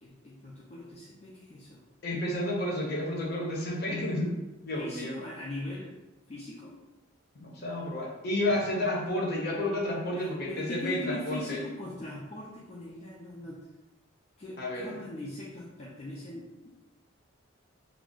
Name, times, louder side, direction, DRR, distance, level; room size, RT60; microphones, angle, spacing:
voice 1, 0.0-1.8 4.8-5.9 6.3-6.8 8.5-8.6 10.1-13.7 14.4-16.7, left 1 dB, 30° left, -6 dB, 0.4 m, -40 dB
voice 2, 2.0-4.3 4.6-5.1 7.3-11.6 14.6-14.9, left 1 dB, 50° left, -3 dB, 0.7 m, -31 dB
2.4 x 2.0 x 3.6 m, 1.0 s
head